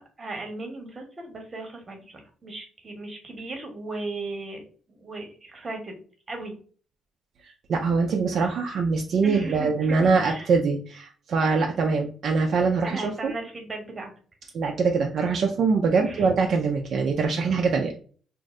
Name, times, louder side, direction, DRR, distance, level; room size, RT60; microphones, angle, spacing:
voice 1, 0.0-2.0 2.4-4.6 5.0-6.0 6.3-6.6 9.2-10.5 12.8-14.1 15.9-16.3, right 2 dB, 30° right, 3 dB, 1.0 m, -36 dB
voice 2, 7.7-13.3 14.5-17.9, right 4 dB, 60° right, 2 dB, 0.4 m, -23 dB
2.6 x 2.0 x 3.5 m, 0.42 s
cardioid pair, 90°, 0 cm